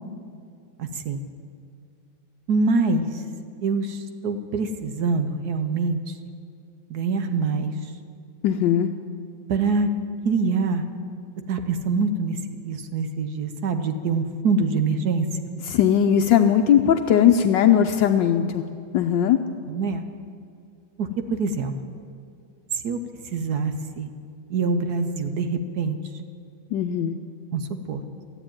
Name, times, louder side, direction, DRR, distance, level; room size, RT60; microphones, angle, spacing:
voice 1, 0.8-1.2 2.5-3.1 3.6-6.1 6.9-7.7 9.5-9.9 10.2-10.8 11.5-12.4 12.7-15.3 19.7-20.0 21.0-21.7 22.8-23.0 23.3-24.1 24.5-26.0 27.5-28.0, right 4 dB, 60° right, 7 dB, 1.2 m, -24 dB
voice 2, 8.4-8.9 15.6-18.6 18.9-19.4 26.7-27.2, left 9 dB, 75° left, 7 dB, 1.2 m, -19 dB
13.5 x 9.9 x 8.8 m, 2.3 s
omnidirectional pair, 2.1 m